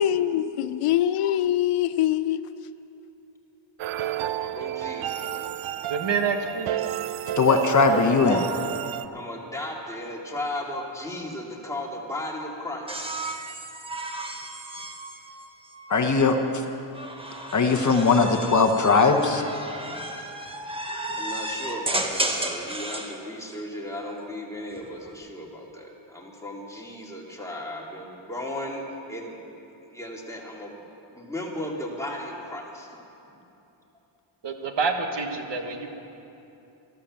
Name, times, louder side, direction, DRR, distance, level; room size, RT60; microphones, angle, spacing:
voice 1, 0.0-2.4, left 11 dB, 85° left, 0.6 m, -23 dB
sound 1, 3.8-9.1, right 12 dB, 70° right, 0.6 m, -31 dB
voice 2, 4.4-5.5 7.8-8.7 9.1-13.0 19.9-20.0 21.1-29.5 29.9-30.8 31.1-32.9, left 1 dB, 5° left, 2.3 m, -35 dB
voice 3, 5.9-6.8 34.4-35.9, right 5 dB, 55° right, 1.5 m, -27 dB
voice 4, 7.4-8.4 15.9-16.6 17.5-19.4, left 4 dB, 35° left, 1.0 m, -20 dB
sound 2, 12.9-16.1 16.9-23.2 24.6-25.1, right 1 dB, 10° right, 1.2 m, -33 dB
13.5 x 12.0 x 7.5 m
cardioid pair, 110°, 50 cm